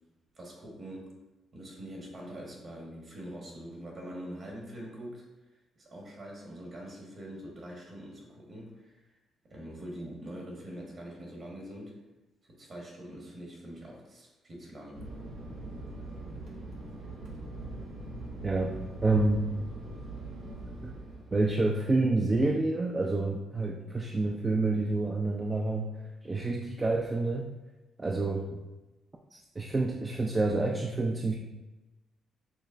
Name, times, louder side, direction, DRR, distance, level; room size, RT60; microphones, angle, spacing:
voice 1, 0.3-1.1 1.5-5.2 5.8-9.0 9.4-12.0 12.5-15.1, equal, 45° right, -2 dB, 1.3 m, -44 dB
Fixed-wing aircraft airplane, 14.9-21.6, right 2 dB, 65° right, 0.8 m, -42 dB
voice 2, 18.4-18.8 19.0-19.4 20.8-20.9 21.3-25.9 26.2-27.5 28.0-28.6 29.3-31.3, right 2 dB, 25° right, 1 dB, 0.3 m, -28 dB
6.0 x 2.1 x 2.5 m, 1.1 s
cardioid pair, 75°, 0 cm